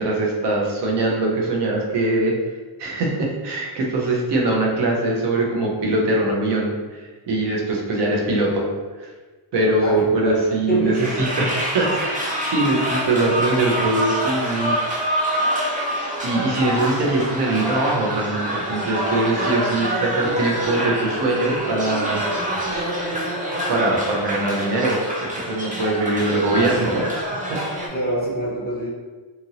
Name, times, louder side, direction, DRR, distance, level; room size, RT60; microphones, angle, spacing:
voice 1, 0.0-2.4 2.8-8.7 9.0-9.1 9.5-14.8 16.2-22.2 22.7-22.9 23.7-27.6, right 2 dB, 60° right, -1 dB, 0.7 m, -22 dB
voice 2, 9.8-10.4 10.7-11.3 27.9-28.9, right 1 dB, 20° left, -5 dB, 0.7 m, -25 dB
sound 1, 10.9-27.9, equal, 20° right, 0.4 m, -26 dB
2.8 x 2.6 x 2.7 m, 1.3 s
wide cardioid pair, 160°, 49 cm